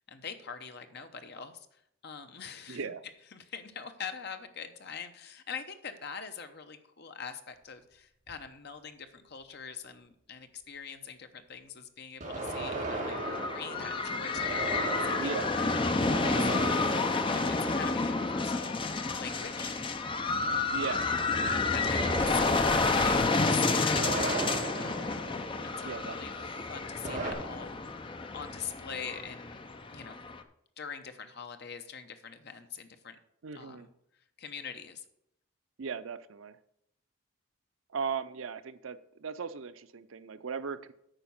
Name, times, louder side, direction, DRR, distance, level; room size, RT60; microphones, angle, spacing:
voice 1, 0.1-1.7 2.0-2.8 3.3-15.3 15.6-15.7 16.3-17.0 17.2-18.8 19.2-19.7 20.4-20.8 21.7-24.1 25.6-27.8 28.3-29.6 29.9-30.2 30.8-33.2 33.5-33.9 34.4-35.0, left 6 dB, 50° left, 8 dB, 0.9 m, -43 dB
voice 2, 2.7-3.0 15.2-16.1 20.7-21.1 25.8-26.5 33.4-33.9 35.8-36.6 37.9-40.9, right 5 dB, 70° right, 13 dB, 0.5 m, -38 dB
sound 1, 8.3-8.4 12.2-18.7 21.9-26.1 27.0-27.3, right 2 dB, 40° right, 2.4 m, -37 dB
sound 2, 12.8-30.4, left 3 dB, 25° left, 0.6 m, -30 dB
9.0 x 5.1 x 7.1 m, 0.75 s
head